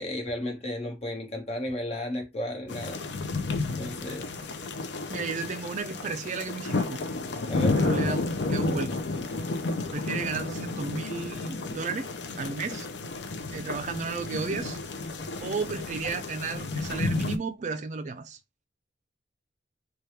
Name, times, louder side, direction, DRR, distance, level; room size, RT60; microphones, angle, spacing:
voice 1, 0.0-3.0 3.6-4.3 7.5-7.8, left 1 dB, 35° left, 1.1 m, -33 dB
sound 1, 2.7-17.4, left 3 dB, 75° left, 0.5 m, -31 dB
voice 2, 5.1-7.0 7.8-9.0 9.9-12.1 12.4-12.9 13.5-14.8 15.4-18.4, right 4 dB, 40° right, 0.4 m, -33 dB
3.3 x 2.3 x 4.2 m
head